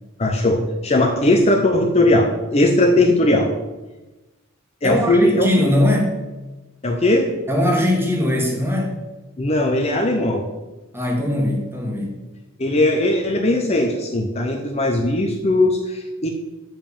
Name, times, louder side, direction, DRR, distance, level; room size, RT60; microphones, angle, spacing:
voice 1, 0.2-3.5 4.8-5.5 6.8-7.3 9.4-10.5 12.6-16.3, left 1 dB, 30° left, 3 dB, 0.7 m, -18 dB
voice 2, 4.8-6.1 7.5-8.9 10.9-12.2, left 1 dB, 10° right, 0 dB, 1.6 m, -20 dB
7.3 x 5.4 x 7.1 m, 1.1 s
head